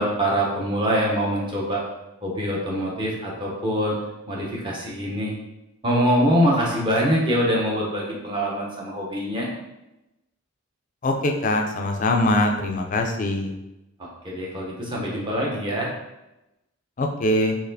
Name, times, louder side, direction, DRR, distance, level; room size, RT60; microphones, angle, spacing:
voice 1, 0.0-1.8 2.2-4.0 4.3-5.3 5.8-9.5 14.0-15.9, equal, 20° right, -3 dB, 0.7 m, -24 dB
voice 2, 11.0-13.5 17.0-17.6, left 1 dB, 35° left, 3 dB, 0.4 m, -22 dB
4.0 x 2.9 x 2.7 m, 0.94 s
head